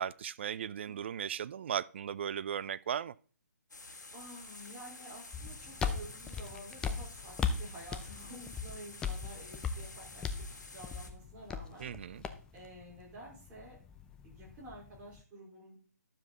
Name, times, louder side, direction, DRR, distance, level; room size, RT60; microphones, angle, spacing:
voice 1, 0.0-3.1 11.8-12.2, right 9 dB, 40° right, 0.4 m, -37 dB
sound 1, 3.7-11.1, left 3 dB, 80° left, 2.3 m, -50 dB
voice 2, 4.1-11.9 12.5-13.8 14.2-15.8, right 1 dB, 15° right, 4.4 m, -50 dB
sound 2, 5.3-15.2, left 6 dB, 10° left, 0.6 m, -39 dB
12.0 x 7.2 x 4.0 m
figure-of-eight pair, 150°, 10 cm